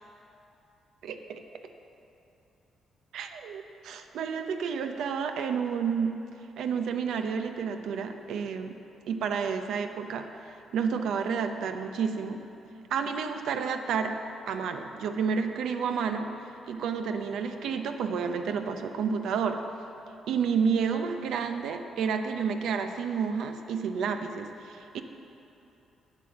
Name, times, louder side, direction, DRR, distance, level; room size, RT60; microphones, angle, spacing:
voice 1, 1.0-1.4 3.1-6.2 6.6-8.8 9.1-12.4 12.9-14.2 14.5-16.3 16.7-19.6 20.3-25.0, right 6 dB, 80° right, 7 dB, 0.7 m, -30 dB
9.0 x 7.7 x 7.1 m, 2.9 s
cardioid pair, 130°, 0 cm